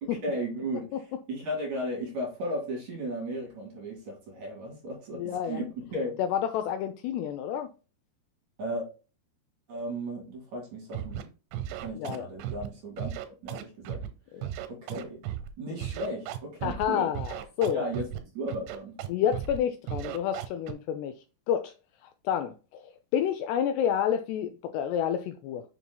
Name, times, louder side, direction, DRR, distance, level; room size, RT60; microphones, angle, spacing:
voice 1, 0.0-6.2 8.6-8.9 9.7-11.2 11.8-13.1 13.4-14.0 14.7-15.2 15.6-17.1 17.6-18.1 18.3-19.0, right 1 dB, 50° right, 3.1 m, -35 dB
voice 2, 5.1-5.6 6.2-7.7 11.9-12.3 14.3-14.5 16.6-17.8 19.1-21.2 21.5-21.7 22.0-22.8 23.1-25.6, left 9 dB, 85° left, 2.4 m, -29 dB
Scratching (performance technique), 10.9-11.2 11.5-12.7 13.0-14.1 14.4-15.5 15.8-16.9 17.2-18.2 18.5-19.1 19.3-19.6 19.9-20.7, right 11 dB, 90° right, 3.2 m, -35 dB
7.4 x 6.9 x 2.2 m
omnidirectional pair, 5.2 m